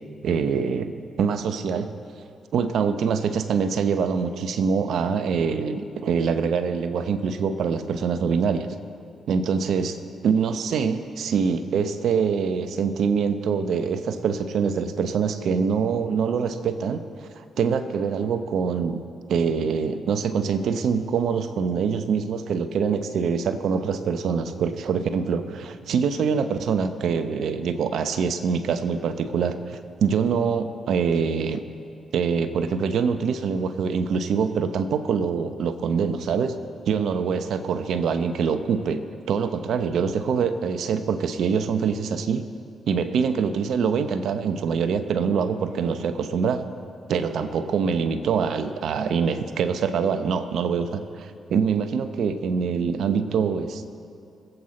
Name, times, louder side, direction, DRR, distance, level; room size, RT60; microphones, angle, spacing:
voice 1, 0.2-1.9 2.5-8.7 9.3-17.0 17.6-19.0 19.3-31.6 32.1-36.5 36.9-39.0 39.3-42.4 42.9-46.7 47.1-53.9, right 6 dB, 70° right, 10 dB, 0.8 m, -24 dB
21.5 x 8.0 x 4.2 m, 2.5 s
supercardioid pair, 50°, 0 cm